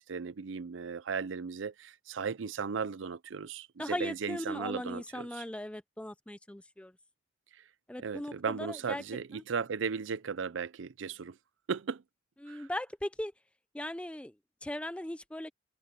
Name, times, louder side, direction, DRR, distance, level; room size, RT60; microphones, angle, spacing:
voice 1, 0.0-5.4 8.0-11.4 11.7-12.0 12.5-12.7, right 5 dB, 85° right, 0.5 m, -36 dB
voice 2, 3.8-6.9 7.9-9.0 9.3-9.4 12.4-13.3 13.7-14.3 14.6-15.5, left 1 dB, 5° left, 0.4 m, -38 dB
head